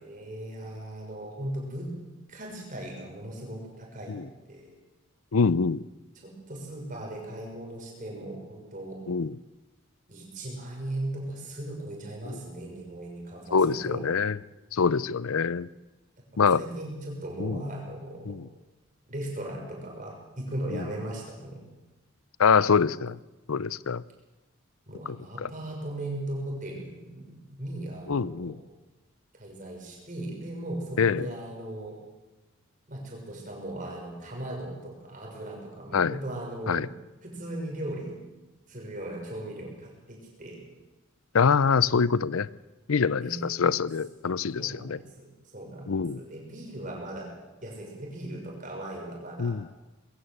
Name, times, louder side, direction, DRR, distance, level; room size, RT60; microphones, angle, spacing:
voice 1, 0.0-1.9 2.3-4.2 4.5-4.7 6.2-9.0 10.1-14.0 16.5-18.3 19.1-21.6 24.9-28.5 29.3-32.0 32.9-36.9 37.2-38.2 38.7-40.6 43.2-43.5 44.6-47.3 47.6-49.5, right 1 dB, 40° right, 0 dB, 6.3 m, -38 dB
voice 2, 5.3-5.8 9.1-9.3 12.2-12.4 13.5-14.4 14.7-15.7 16.4-16.6 17.4-17.6 18.3-18.4 20.7-20.8 22.4-23.2 23.5-24.0 25.1-25.5 28.1-28.6 31.0-31.3 35.9-36.2 36.7-36.9 41.3-42.5 42.9-45.0 45.9-46.2 49.4-49.6, left 5 dB, 85° left, 20 dB, 0.6 m, -25 dB
21.0 x 16.0 x 7.9 m, 1.1 s
head